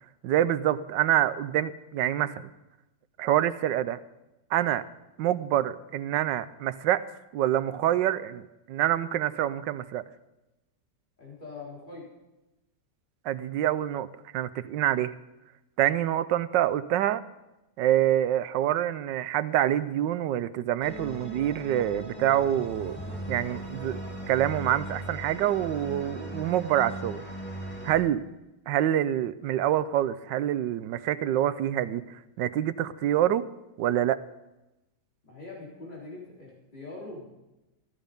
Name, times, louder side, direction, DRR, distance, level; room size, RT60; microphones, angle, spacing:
voice 1, 0.2-2.5 3.2-4.0 4.5-4.8 5.2-7.0 7.3-10.0 13.2-14.1 14.3-15.1 15.8-17.2 17.8-23.0 23.3-24.0 24.3-27.2 27.8-28.2 28.7-32.0 32.4-33.5 33.8-34.2, right 12 dB, 90° right, 14 dB, 1.3 m, -26 dB
voice 2, 11.2-12.1 27.5-27.9 35.2-37.3, left 3 dB, 25° left, -4 dB, 4.3 m, -43 dB
sound 1, 20.8-27.9, right 1 dB, 5° left, 2.3 m, -38 dB
14.0 x 13.5 x 5.2 m, 0.98 s
omnidirectional pair, 1.9 m